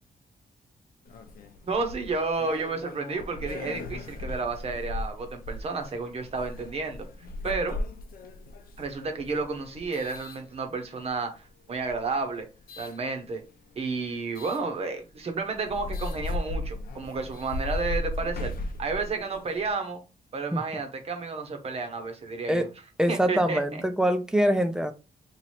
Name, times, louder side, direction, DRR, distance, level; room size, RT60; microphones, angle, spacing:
sound 1, 1.1-11.1 11.7-13.0 14.3-14.6 15.2-15.3 15.5-19.7, left 2 dB, 65° left, 0.6 m, -37 dB
voice 1, 1.6-7.1 7.4-7.8 8.8-12.5 12.8-13.4 13.8-18.5 18.8-20.0 20.3-22.7 23.1-23.8, right 4 dB, 40° right, 0.8 m, -31 dB
voice 2, 23.0-24.9, equal, 5° right, 0.3 m, -24 dB
3.1 x 2.6 x 4.2 m
wide cardioid pair, 175°, 16 cm